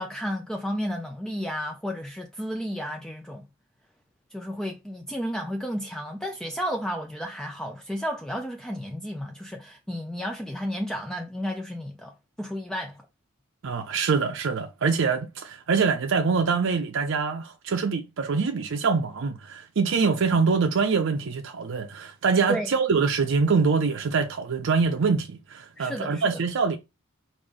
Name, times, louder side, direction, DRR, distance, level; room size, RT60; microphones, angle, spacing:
voice 1, 0.0-3.5 4.3-13.1 20.0-20.1 22.5-22.7 25.8-26.4, equal, 5° left, 0.3 m, -32 dB
voice 2, 13.6-26.8, right 5 dB, 65° right, 0.5 m, -24 dB
5.0 x 2.6 x 3.5 m
head